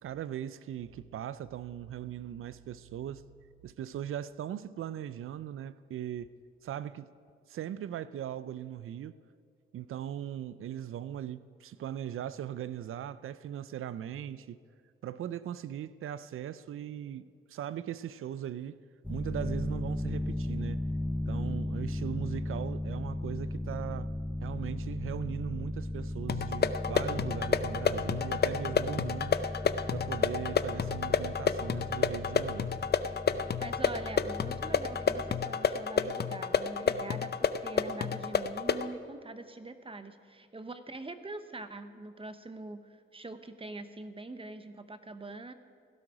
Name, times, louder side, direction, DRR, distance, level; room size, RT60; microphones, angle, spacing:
voice 1, 0.0-3.2 3.6-6.3 6.6-7.1 7.5-9.2 9.7-14.6 15.0-18.8 19.1-20.8 21.3-24.1 24.4-29.4 29.9-32.7, right 10 dB, 85° right, 0.4 m, -39 dB
sound 1, 19.0-35.5, left 1 dB, 5° left, 0.7 m, -36 dB
sound 2, 26.3-38.9, left 6 dB, 50° left, 0.6 m, -30 dB
voice 2, 33.6-45.5, right 2 dB, 25° right, 0.9 m, -44 dB
17.0 x 12.0 x 5.0 m
cardioid pair, 75°, 21 cm